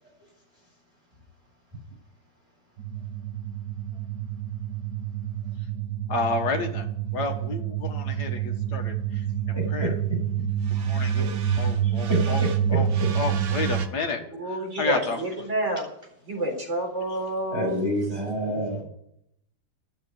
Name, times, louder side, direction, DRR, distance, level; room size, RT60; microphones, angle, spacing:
sound 1, 2.8-13.9, right 9 dB, 60° right, 1.3 m, -27 dB
voice 1, 6.1-6.9 7.1-9.3 9.7-9.9 10.7-12.9 13.1-15.2 18.4-18.8, left 4 dB, 70° left, 4 dB, 2.2 m, -31 dB
voice 2, 9.5-9.9 11.1-12.2 12.7-12.8 14.1-14.2 17.5-18.8, equal, 15° left, -3 dB, 8.0 m, -29 dB
voice 3, 14.4-15.9 16.3-17.8, right 1 dB, 40° right, 0 dB, 4.4 m, -29 dB
12.0 x 7.5 x 9.8 m, 0.74 s
omnidirectional pair, 1.8 m